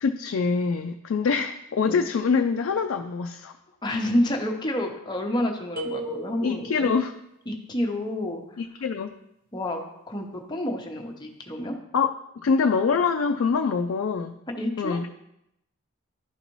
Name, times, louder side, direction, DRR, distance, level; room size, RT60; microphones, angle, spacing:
voice 1, 0.0-3.5 6.0-7.1 8.6-9.1 11.9-12.2 12.4-14.3 14.8-15.1, left 5 dB, 70° left, 4 dB, 0.4 m, -25 dB
voice 2, 3.8-6.9 7.5-8.4 9.5-11.8 14.6-15.0, left 1 dB, 20° left, 2 dB, 0.8 m, -29 dB
sound 1, 5.8-6.9, right 1 dB, 45° right, 0.9 m, -35 dB
11.5 x 4.0 x 3.0 m, 0.82 s
head